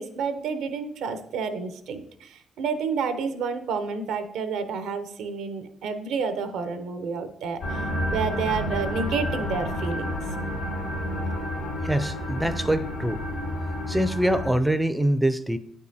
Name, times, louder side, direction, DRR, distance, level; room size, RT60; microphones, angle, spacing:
voice 1, 0.0-10.1, right 5 dB, 85° right, 9 dB, 0.6 m, -30 dB
sound 1, 7.6-14.5, left 1 dB, 90° left, 2.4 m, -30 dB
voice 2, 11.8-13.2 13.9-15.6, right 1 dB, 5° right, 11 dB, 0.4 m, -24 dB
8.1 x 5.4 x 2.7 m, 0.73 s
cardioid pair, 90°, 0 cm